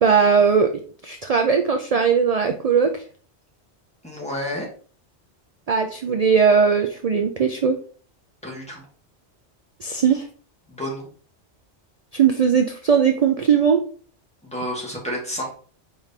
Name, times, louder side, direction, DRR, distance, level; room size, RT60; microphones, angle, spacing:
voice 1, 0.0-0.7 1.0-3.0 5.7-7.8 9.8-10.3 12.1-13.8, right 6 dB, 75° right, 5 dB, 0.3 m, -19 dB
voice 2, 4.0-4.7 8.4-8.8 10.7-11.1 14.4-15.6, equal, 5° left, -4 dB, 1.6 m, -30 dB
4.6 x 3.7 x 2.8 m, 0.43 s
omnidirectional pair, 1.2 m